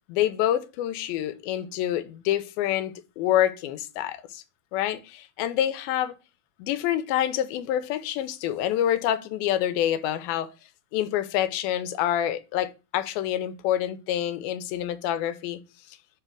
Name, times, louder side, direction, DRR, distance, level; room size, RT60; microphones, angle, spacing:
voice 1, 0.1-4.4 4.7-6.1 6.6-10.5 10.9-15.6, left 11 dB, 85° left, 2.4 m, -27 dB
6.6 x 3.3 x 6.0 m
omnidirectional pair, 4.2 m